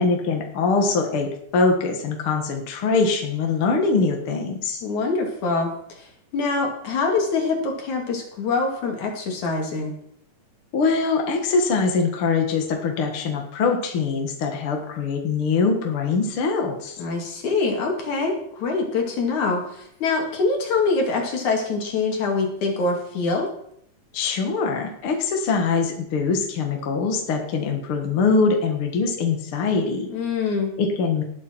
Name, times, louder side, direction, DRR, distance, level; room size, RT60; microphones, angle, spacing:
voice 1, 0.0-4.8 10.7-17.0 24.1-30.1 30.8-31.2, left 4 dB, 50° left, 2 dB, 2.1 m, -23 dB
voice 2, 4.8-10.0 17.0-23.5 30.1-30.7, left 3 dB, 65° left, 1 dB, 3.7 m, -24 dB
19.0 x 8.3 x 4.5 m, 0.70 s
omnidirectional pair, 3.6 m